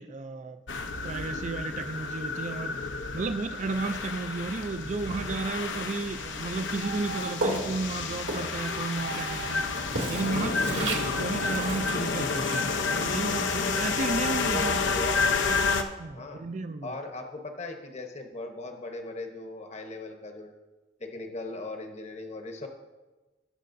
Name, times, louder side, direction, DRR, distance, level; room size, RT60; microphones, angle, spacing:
voice 1, 0.0-14.9 16.0-16.9, right 3 dB, 40° right, 9 dB, 0.4 m, -33 dB
sound 1, 0.7-15.8, left 4 dB, 80° left, 0.8 m, -30 dB
Walk footsteps, 7.3-14.5, right 2 dB, 75° right, 1.9 m, -37 dB
voice 2, 14.2-15.4 16.2-16.4 16.8-20.5 21.0-22.7, left 2 dB, 40° left, 4 dB, 1.0 m, -38 dB
18.5 x 6.6 x 2.6 m, 1.2 s
head